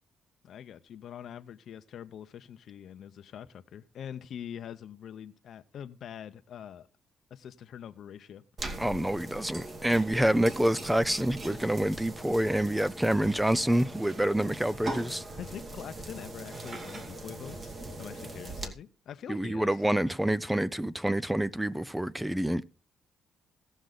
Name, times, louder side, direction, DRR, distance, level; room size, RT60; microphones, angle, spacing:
voice 1, 0.4-6.9 7.3-8.4 10.1-10.4 14.7-14.9 15.4-19.8, left 9 dB, 65° left, 0.7 m, -44 dB
sound 1, 8.6-18.7, right 2 dB, 40° right, 2.2 m, -40 dB
voice 2, 8.8-15.2 19.3-22.6, right 1 dB, 5° right, 0.5 m, -27 dB
18.0 x 6.3 x 3.9 m
cardioid pair, 90°, 0 cm